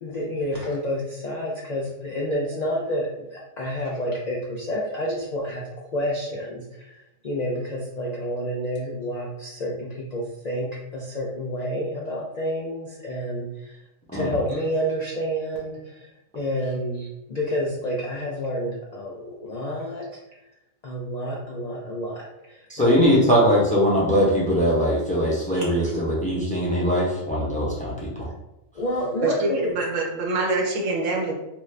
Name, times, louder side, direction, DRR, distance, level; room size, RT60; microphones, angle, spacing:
voice 1, 0.0-13.8 14.1-16.1 16.3-20.1 20.8-23.1 25.5-25.7 28.7-29.7, equal, 70° left, -3 dB, 0.4 m, -29 dB
voice 2, 22.7-28.1, equal, 10° left, -6 dB, 0.5 m, -21 dB
voice 3, 29.2-31.3, right 3 dB, 80° right, 0 dB, 1.1 m, -25 dB
2.6 x 2.4 x 3.2 m, 0.92 s
omnidirectional pair, 1.3 m